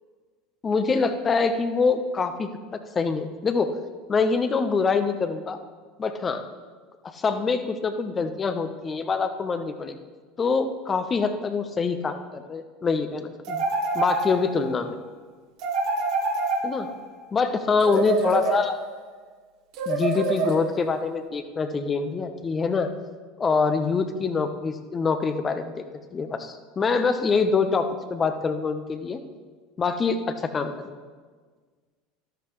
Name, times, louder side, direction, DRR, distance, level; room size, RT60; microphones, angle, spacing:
voice 1, 0.6-2.5 2.9-3.7 4.1-5.6 6.0-6.4 7.1-10.0 10.4-13.6 13.9-15.0 16.6-16.9 17.3-18.8 19.9-22.9 23.4-25.7 26.1-29.2 29.8-31.0, left 4 dB, 25° left, 9 dB, 1.1 m, -25 dB
sound 1, 13.4-14.7 15.6-17.1 17.8-19.0 19.7-20.9, right 3 dB, 55° right, 1.9 m, -27 dB
13.0 x 13.0 x 3.3 m, 1.5 s
figure-of-eight pair, 75°, 0 cm